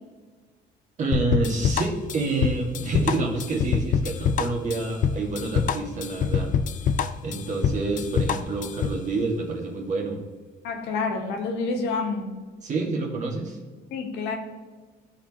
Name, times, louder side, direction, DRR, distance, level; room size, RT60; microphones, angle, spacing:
voice 1, 1.0-6.5 7.2-10.2 12.6-13.6, right 3 dB, 45° right, 1 dB, 1.6 m, -28 dB
sound 1, 1.1-9.0, left 7 dB, 50° left, 0.5 m, -25 dB
voice 2, 10.6-12.4 13.9-14.4, left 4 dB, 85° left, 3 dB, 1.3 m, -28 dB
12.5 x 4.3 x 2.9 m, 1.4 s
cardioid pair, 110°, 17 cm